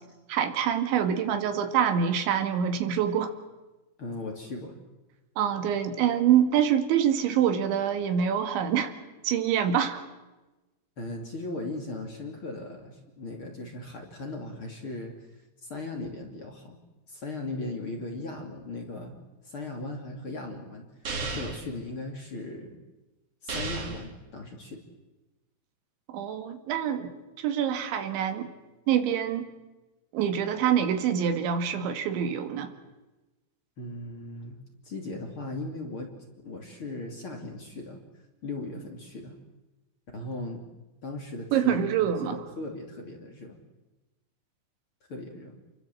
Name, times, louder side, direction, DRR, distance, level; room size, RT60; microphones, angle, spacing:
voice 1, 0.3-3.3 5.4-8.9 9.2-10.0 26.1-28.5 28.9-29.5 30.1-32.7 41.5-42.4, right 9 dB, 85° right, 7 dB, 4.2 m, -26 dB
voice 2, 4.0-4.8 11.0-15.2 15.6-16.8 17.1-19.2 19.4-20.9 21.2-22.8 23.4-24.8 33.8-34.6 34.8-36.1 36.4-38.0 38.4-39.4 40.1-40.6 41.0-43.6 45.1-45.6, left 2 dB, 35° left, 2 dB, 2.9 m, -38 dB
sound 1, 21.0-21.7 23.5-24.1, right 3 dB, 40° right, 3.0 m, -33 dB
29.0 x 22.5 x 7.7 m, 1.1 s
omnidirectional pair, 5.2 m